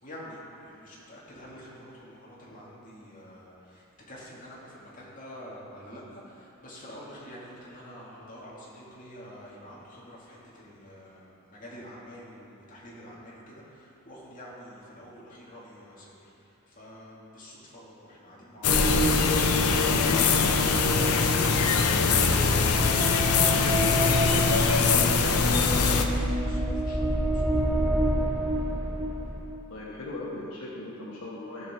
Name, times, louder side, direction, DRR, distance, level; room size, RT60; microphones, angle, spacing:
voice 1, 0.0-23.6 23.9-27.7, equal, 40° left, -6 dB, 2.3 m, -47 dB
sound 1, 18.6-26.1, left 5 dB, 90° left, 0.7 m, -23 dB
sound 2, 18.7-29.5, right 1 dB, 35° right, 2.3 m, -28 dB
voice 2, 29.7-31.7, left 2 dB, 75° left, -4 dB, 1.1 m, -38 dB
15.0 x 5.7 x 4.4 m, 2.8 s
head